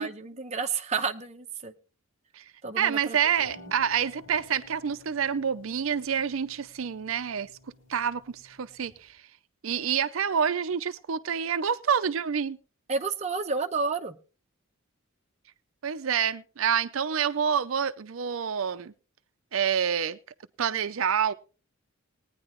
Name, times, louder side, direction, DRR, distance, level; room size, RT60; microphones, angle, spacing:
voice 1, 0.0-1.7 2.6-3.2 12.9-14.2, right 4 dB, 30° right, 0.8 m, -30 dB
voice 2, 2.8-7.5 7.9-9.2 9.6-12.6 15.8-18.9 19.5-20.2 20.6-21.3, right 7 dB, 70° right, 0.5 m, -27 dB
sound 1, 3.1-9.1, left 2 dB, 70° left, 7.4 m, -53 dB
20.0 x 9.7 x 3.1 m
head